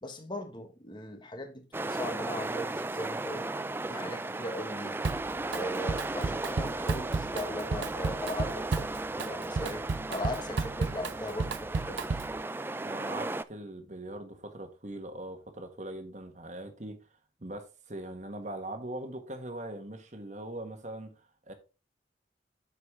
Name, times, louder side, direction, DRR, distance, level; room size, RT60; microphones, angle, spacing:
voice 1, 0.0-3.5 3.9-5.1 5.5-8.9 9.2-12.1, left 1 dB, 25° left, 1.3 m, -39 dB
sound 1, 1.7-13.4, right 2 dB, 10° right, 0.3 m, -35 dB
Drum kit, 5.0-5.6 5.9-12.4, right 4 dB, 85° right, 0.6 m, -33 dB
voice 2, 12.8-17.1 17.4-21.5, right 1 dB, 40° right, 1.6 m, -41 dB
8.3 x 6.6 x 3.7 m
head